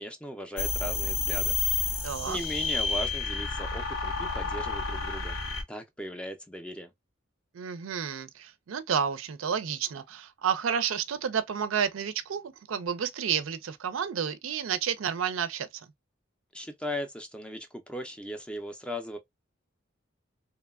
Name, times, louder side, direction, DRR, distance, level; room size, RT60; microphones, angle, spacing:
voice 1, 0.0-5.4 5.7-6.9 16.5-19.2, equal, 5° left, 0.4 m, -38 dB
sound 1, 0.6-5.6, left 4 dB, 75° left, 0.9 m, -30 dB
voice 2, 2.0-2.4 7.5-15.7, right 7 dB, 85° right, 0.4 m, -30 dB
2.9 x 2.2 x 2.2 m
head